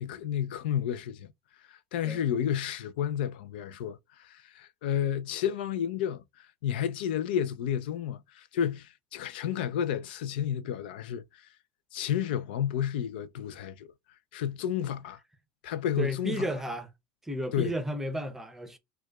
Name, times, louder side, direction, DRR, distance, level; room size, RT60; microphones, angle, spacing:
voice 1, 0.0-1.3 1.7-11.5 11.9-13.9 14.3-15.2 15.6-16.5 17.5-17.7, left 9 dB, 85° left, 0.4 m, -31 dB
voice 2, 16.0-16.9 17.2-18.8, right 1 dB, 5° right, 0.7 m, -33 dB
4.6 x 2.3 x 2.3 m
supercardioid pair, 125°, 5 cm